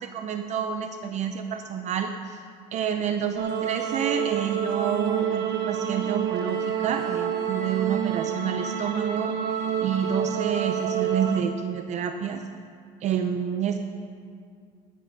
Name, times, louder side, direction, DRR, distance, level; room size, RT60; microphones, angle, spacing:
voice 1, 0.0-2.4 2.7-9.3 9.8-12.4 13.0-13.8, right 7 dB, 40° right, 6 dB, 0.6 m, -28 dB
sound 1, 3.3-11.4, right 8 dB, 70° right, 1.2 m, -28 dB
14.0 x 9.3 x 5.3 m, 2.2 s
cardioid pair, 150°, 17 cm